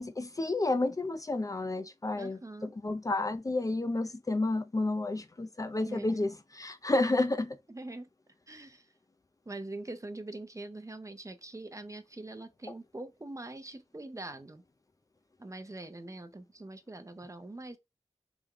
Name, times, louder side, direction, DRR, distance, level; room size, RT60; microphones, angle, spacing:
voice 1, 0.0-7.6, left 2 dB, 30° left, 0.5 m, -31 dB
voice 2, 2.1-2.8 5.8-6.2 7.7-8.1 8.5-8.9 9.5-14.6 15.4-17.8, right 2 dB, 30° right, 0.6 m, -43 dB
3.4 x 2.2 x 3.6 m
cardioid pair, 50°, 11 cm